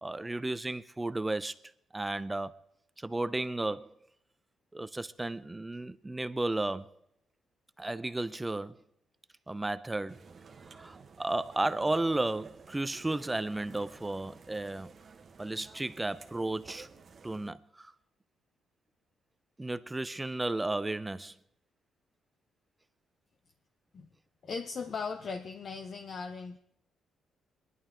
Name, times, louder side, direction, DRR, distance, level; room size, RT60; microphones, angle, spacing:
voice 1, 0.0-1.6 1.9-2.6 3.0-3.9 4.7-6.9 7.8-8.8 9.5-10.2 10.7-14.9 15.4-16.9 17.2-17.9 19.6-21.3, right 2 dB, 15° right, 0.6 m, -33 dB
sound 1, 10.1-17.5, right 5 dB, 45° right, 1.2 m, -53 dB
voice 2, 24.4-26.6, left 5 dB, 50° left, 0.7 m, -38 dB
22.0 x 11.0 x 3.8 m
cardioid pair, 90°, 0 cm